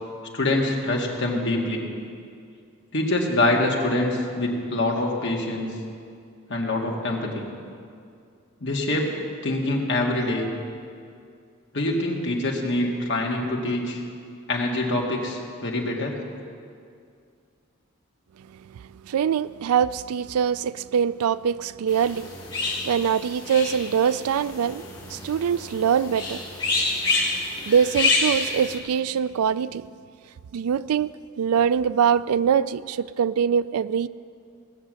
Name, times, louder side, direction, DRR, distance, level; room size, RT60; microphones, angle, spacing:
voice 1, 0.3-1.8 2.9-5.7 6.5-7.4 8.6-9.1 9.4-10.5 11.7-14.0 14.5-16.2, left 2 dB, 55° left, 1.9 m, -25 dB
voice 2, 18.7-22.3 22.6-26.4 27.7-29.9 30.5-34.1, right 7 dB, 85° right, 0.3 m, -23 dB
sound 1, 21.9-28.8, left 3 dB, 25° left, 2.9 m, -28 dB
18.0 x 6.8 x 7.7 m
head